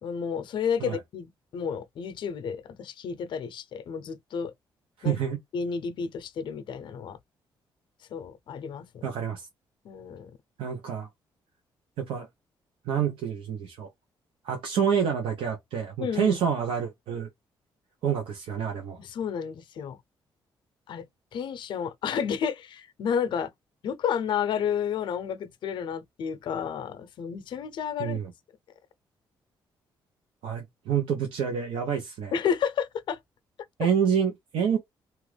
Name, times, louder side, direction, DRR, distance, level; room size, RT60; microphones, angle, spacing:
voice 1, 0.0-4.5 5.0-5.2 5.5-7.2 8.1-9.1 9.8-10.3 16.0-16.4 19.0-20.0 20.9-21.1 21.3-23.5 23.8-28.2 32.3-33.2 33.8-33.9, left 7 dB, 65° left, 0.6 m, -31 dB
voice 2, 5.0-5.4 9.0-9.5 10.6-11.1 12.0-12.3 12.9-13.9 14.4-17.3 18.0-19.0 28.0-28.3 30.4-32.3 33.8-34.8, right 7 dB, 85° right, 0.8 m, -28 dB
2.9 x 2.5 x 3.2 m
cardioid pair, 130°, 9 cm